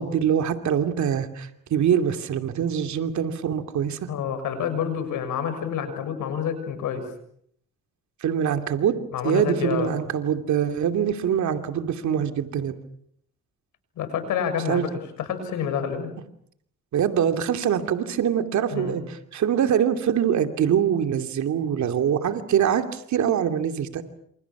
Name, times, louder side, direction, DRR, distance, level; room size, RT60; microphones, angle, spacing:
voice 1, 0.0-4.1 8.2-8.9 9.2-12.7 14.7-14.9 16.9-24.0, right 8 dB, 70° right, 7 dB, 2.7 m, -24 dB
voice 2, 4.1-7.1 9.1-9.9 14.0-14.9 15.2-16.1 18.7-19.0, left 8 dB, 80° left, 9 dB, 6.7 m, -28 dB
28.5 x 27.5 x 6.1 m, 0.67 s
cardioid pair, 90°, 30 cm